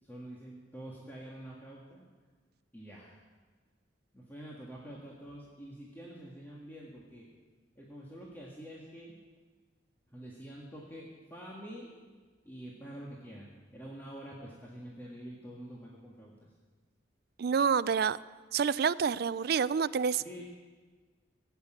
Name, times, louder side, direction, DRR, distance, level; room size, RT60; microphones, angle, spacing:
voice 1, 0.0-2.0 2.7-3.2 4.1-7.3 7.8-9.2 10.1-11.9 12.4-16.5 20.2-20.4, right 1 dB, 10° left, -4 dB, 1.8 m, -47 dB
voice 2, 17.4-18.2 18.5-20.2, right 6 dB, 55° right, 16 dB, 0.4 m, -28 dB
17.0 x 8.3 x 9.1 m, 1.4 s
head